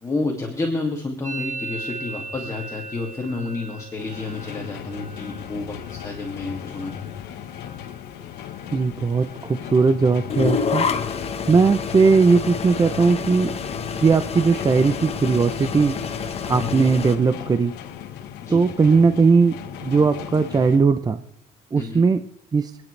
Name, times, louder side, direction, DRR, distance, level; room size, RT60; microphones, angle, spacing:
voice 1, 0.0-7.0 16.6-16.9 18.4-18.6 21.7-22.0, left 3 dB, 20° left, 0 dB, 2.5 m, -30 dB
Musical instrument, 1.2-8.9 9.1-9.7 10.0-10.6 10.8-12.9, right 3 dB, 45° right, 5.3 m, -40 dB
sound 1, 4.0-20.8, left 10 dB, 80° left, 1.3 m, -37 dB
voice 2, 8.7-10.9 11.5-13.5 14.0-15.9 16.5-17.7 18.5-21.2 21.7-22.2 22.5-22.7, right 4 dB, 25° right, 10 dB, 0.7 m, -18 dB
sound 2, 10.3-17.2, left 6 dB, 35° left, 1.3 m, -28 dB
27.5 x 9.9 x 3.3 m, 0.67 s
cardioid pair, 110°, 17 cm